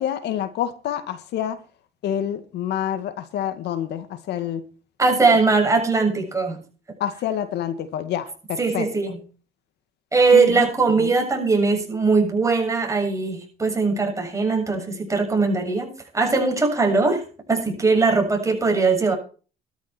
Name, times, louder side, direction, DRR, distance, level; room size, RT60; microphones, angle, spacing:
voice 1, 0.0-1.6 2.0-4.6 7.0-8.9 10.3-10.7 11.0-11.1, left 10 dB, 75° left, 2.1 m, -27 dB
voice 2, 5.0-6.6 8.6-9.2 10.1-15.9 16.1-17.2 17.5-19.1, right 4 dB, 15° right, 7.2 m, -20 dB
14.5 x 13.0 x 4.5 m
cardioid pair, 90°, 18 cm